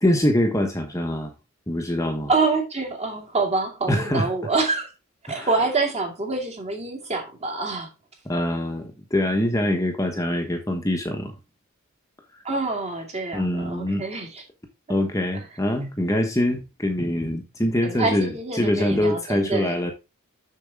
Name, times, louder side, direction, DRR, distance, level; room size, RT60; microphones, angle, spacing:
voice 1, 0.0-1.3 1.7-2.3 3.9-4.3 5.3-5.5 8.3-11.3 13.3-14.0 14.9-18.3 18.5-19.9, left 1 dB, 15° left, 1.1 m, -24 dB
voice 2, 2.3-4.9 5.2-7.9 12.4-14.4 14.9-15.0 15.3-15.4 17.8-19.8, right 3 dB, 30° right, 2.4 m, -26 dB
7.2 x 6.8 x 3.5 m
head